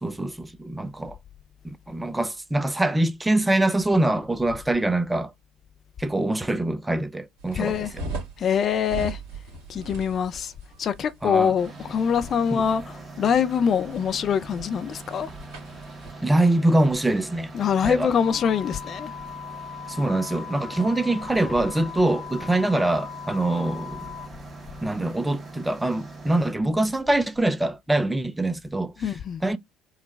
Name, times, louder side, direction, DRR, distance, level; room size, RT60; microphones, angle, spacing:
voice 1, 0.0-1.2 1.6-5.3 6.0-8.0 11.2-11.5 12.5-12.6 16.2-17.5 17.8-18.1 19.9-24.1 24.8-28.9 29.4-29.6, right 1 dB, 10° right, 0.5 m, -24 dB
sound 1, 7.4-16.1, right 2 dB, 65° right, 1.7 m, -40 dB
voice 2, 7.5-7.9 8.4-9.2 9.7-10.5 10.8-15.3 17.5-19.1 29.0-29.4, left 7 dB, 40° left, 0.5 m, -24 dB
sound 2, 11.6-26.5, right 3 dB, 25° right, 1.4 m, -42 dB
sound 3, 18.2-24.3, left 8 dB, 70° left, 1.0 m, -39 dB
4.7 x 2.2 x 3.1 m
figure-of-eight pair, 55°, 0 cm